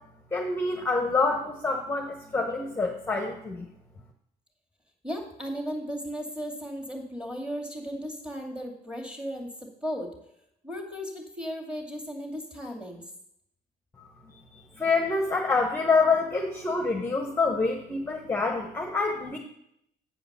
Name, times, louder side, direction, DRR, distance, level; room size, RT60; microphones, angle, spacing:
voice 1, 0.3-3.7 14.3-19.4, left 3 dB, 10° left, 2 dB, 1.0 m, -27 dB
voice 2, 5.0-10.1 10.6-13.0, equal, 5° right, 2 dB, 2.3 m, -35 dB
8.8 x 5.0 x 6.8 m, 0.75 s
cardioid pair, 110°, 17 cm